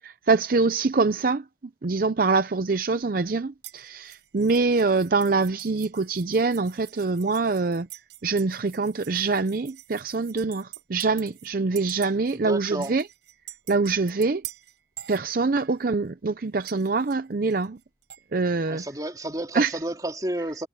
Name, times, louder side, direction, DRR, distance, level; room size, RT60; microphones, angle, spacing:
voice 1, 0.0-1.4 1.8-7.9 8.2-13.0 13.7-14.4 15.1-17.8 18.3-18.8 19.5-19.7, right 4 dB, 50° right, 0.5 m, -24 dB
sound 1, 3.6-11.5 11.8-12.4 12.8-15.8 16.6-18.2, right 14 dB, 85° right, 4.4 m, -45 dB
voice 2, 12.3-12.9 18.7-20.7, right 1 dB, 20° right, 3.3 m, -31 dB
head